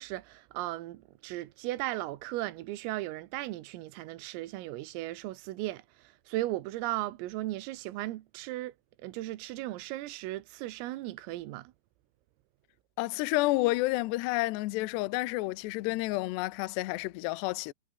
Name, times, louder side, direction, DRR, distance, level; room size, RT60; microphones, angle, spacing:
voice 1, 0.0-11.7, right 17 dB, 90° right, 3.9 m, -36 dB
voice 2, 13.0-17.7, left 20 dB, 85° left, 2.4 m, -30 dB
omnidirectional pair, 6.0 m